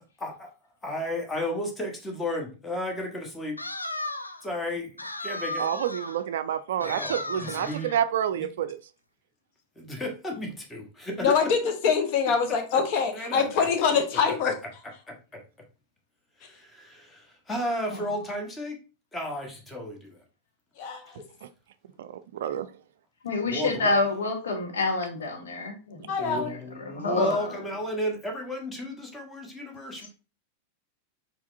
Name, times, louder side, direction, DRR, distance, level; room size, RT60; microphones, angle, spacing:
voice 1, 0.2-0.5 0.8-3.6 4.4-4.9 5.2-5.7 6.8-7.9 8.3-8.5 9.8-11.5 12.7-12.8 13.1-14.0 14.4-14.5 16.7-17.2 17.5-18.8 19.1-20.1 23.5-23.9 26.2-30.1, left 1 dB, 10° left, 1 dB, 1.3 m, -33 dB
sound 1, 3.6-4.5 5.0-6.2 6.8-7.9, left 2 dB, 85° left, 0.4 m, -35 dB
voice 2, 5.6-8.8 22.0-22.7, right 10 dB, 60° right, 12 dB, 0.3 m, -29 dB
voice 3, 7.4-8.0 17.9-18.0 23.2-26.5 26.9-27.5, left 3 dB, 65° left, 2 dB, 1.2 m, -28 dB
voice 4, 11.2-14.5 20.8-21.0 26.1-26.5, left 6 dB, 45° left, 5 dB, 0.9 m, -24 dB
4.7 x 4.3 x 2.6 m, 0.33 s
figure-of-eight pair, 90°, 0 cm